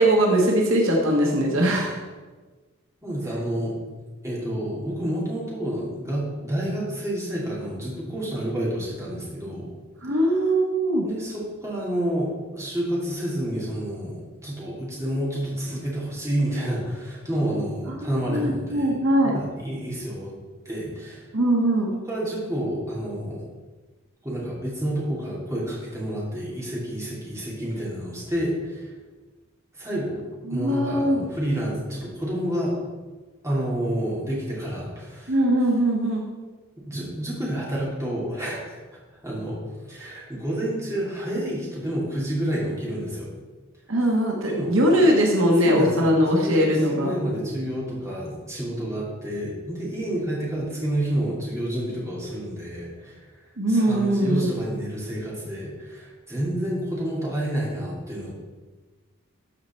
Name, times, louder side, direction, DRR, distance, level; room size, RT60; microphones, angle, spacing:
voice 1, 0.0-2.0 10.0-11.0 18.3-19.4 21.3-21.9 30.5-31.2 35.3-36.2 43.9-47.1 53.6-54.5, right 1 dB, 70° right, 0 dB, 1.4 m, -21 dB
voice 2, 3.0-3.7 4.2-9.7 11.0-18.9 19.2-20.3 20.6-21.3 22.1-23.4 24.2-28.9 29.7-30.2 30.5-32.8 33.4-35.3 36.9-38.8 39.1-39.6 39.9-43.3 44.5-44.8 45.7-53.2 53.7-58.3, right 1 dB, 15° right, -6 dB, 2.7 m, -29 dB
13.5 x 4.8 x 4.4 m, 1.3 s
head